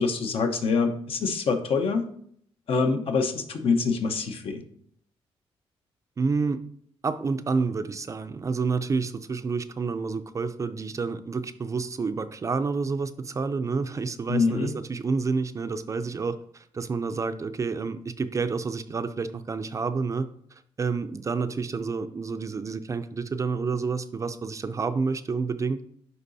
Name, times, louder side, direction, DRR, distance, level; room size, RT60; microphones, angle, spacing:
voice 1, 0.0-2.0 2.7-4.6 14.3-14.7, left 4 dB, 60° left, 6 dB, 0.9 m, -25 dB
voice 2, 6.2-6.6 7.0-20.3 20.8-25.8, right 4 dB, 30° right, 11 dB, 0.4 m, -29 dB
10.5 x 3.9 x 2.7 m, 0.64 s
cardioid pair, 115°, 11 cm